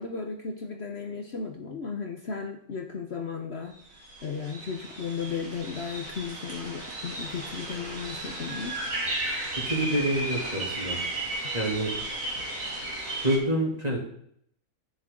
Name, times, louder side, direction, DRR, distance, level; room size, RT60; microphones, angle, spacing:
voice 1, 0.0-3.8 4.2-8.7, left 5 dB, 50° left, 4 dB, 1.1 m, -35 dB
sound 1, 3.7-3.8 4.0-13.4, right 2 dB, 65° right, 3.1 m, -34 dB
voice 2, 9.6-11.0 11.5-11.9 13.2-14.0, right 1 dB, 25° right, -2 dB, 3.0 m, -27 dB
11.0 x 9.7 x 3.8 m, 0.68 s
omnidirectional pair, 1.5 m